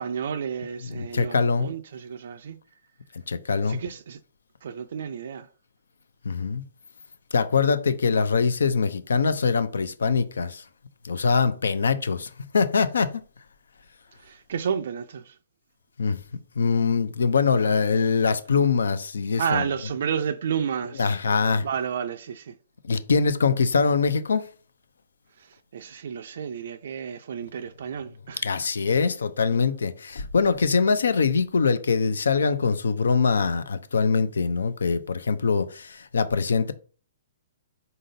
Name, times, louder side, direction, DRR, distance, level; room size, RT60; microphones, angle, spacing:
voice 1, 0.0-2.6 3.7-4.2 4.6-5.5 14.2-15.3 19.4-21.1 21.6-22.5 25.7-28.4, right 7 dB, 65° right, 0.3 m, -31 dB
voice 2, 0.8-1.7 3.3-3.8 6.2-6.6 7.3-10.6 11.0-13.2 16.0-16.2 16.6-19.6 21.0-21.7 22.8-24.5 28.4-36.7, left 5 dB, 75° left, 0.5 m, -23 dB
4.0 x 3.7 x 2.7 m
hypercardioid pair, 130°, 0 cm